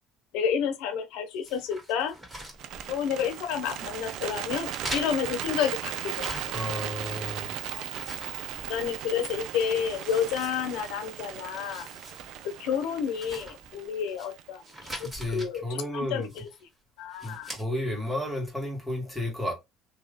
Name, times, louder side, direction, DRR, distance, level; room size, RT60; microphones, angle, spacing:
voice 1, 0.3-2.1 2.9-6.4 7.6-7.8 8.7-11.9 12.4-14.6 15.0-16.5 17.0-17.5, left 7 dB, 80° left, 0.9 m, -30 dB
sound 1, 1.4-3.3 3.6-4.2 4.7-6.8 7.2-9.1 9.4-9.5 9.9-11.1 11.4-12.2 12.6-12.7 13.1-14.3 14.6-15.5 16.2-16.7 17.1-17.6, right 1 dB, 15° right, 1.8 m, -43 dB
Bird, 2.5-14.7, right 11 dB, 65° right, 0.4 m, -37 dB
voice 2, 6.5-7.5 15.0-16.3 17.2-19.5, left 1 dB, 5° left, 1.6 m, -32 dB
2.9 x 2.4 x 3.6 m
cardioid pair, 115°, 0 cm